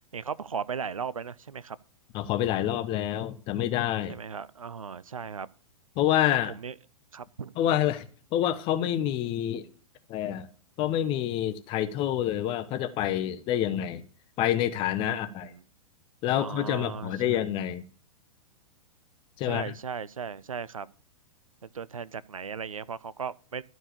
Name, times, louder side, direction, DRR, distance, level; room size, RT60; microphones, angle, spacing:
voice 1, 0.1-1.8 4.1-5.5 6.5-6.7 7.1-7.5 15.1-15.6 16.3-17.4 19.4-20.9 21.6-23.6, right 6 dB, 75° right, 0.5 m, -37 dB
voice 2, 2.1-4.2 6.0-6.5 7.6-8.0 8.3-9.7 10.1-10.5 10.8-14.0 14.4-15.5 16.2-17.8 19.4-19.6, left 11 dB, 30° left, 0.9 m, -27 dB
12.5 x 4.6 x 8.3 m
figure-of-eight pair, 105°, 18 cm